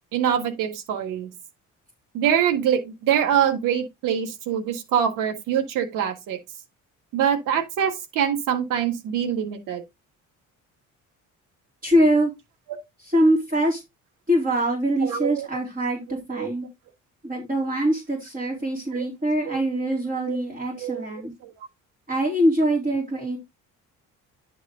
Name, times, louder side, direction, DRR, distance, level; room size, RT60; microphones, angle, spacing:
voice 1, 0.1-1.3 2.1-6.4 7.1-9.8 15.0-15.5 16.3-16.5 18.9-19.1 19.5-19.6 20.3-20.4 20.7-21.0 21.4-21.5, right 9 dB, 90° right, 1.7 m, -24 dB
voice 2, 11.8-12.3 13.0-13.8 14.3-16.7 17.2-21.3 22.1-23.4, right 1 dB, 25° right, 3.6 m, -23 dB
10.5 x 4.7 x 3.8 m
cardioid pair, 115°, 31 cm